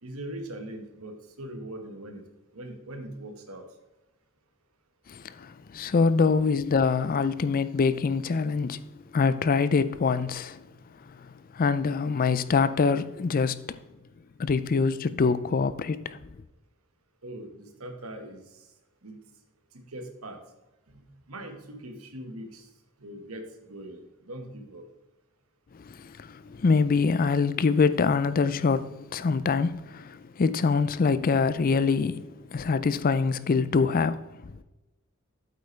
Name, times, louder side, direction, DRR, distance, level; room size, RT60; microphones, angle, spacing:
voice 1, 0.0-2.2 2.5-3.6 17.2-18.7 19.0-19.2 19.7-20.4 20.9-22.7 23.0-24.8, right 1 dB, 80° right, 1.5 m, -41 dB
voice 2, 5.1-8.8 9.1-10.6 11.0-13.8 14.4-16.2 25.7-34.6, left 4 dB, 40° left, 0.4 m, -25 dB
8.3 x 8.2 x 3.3 m
head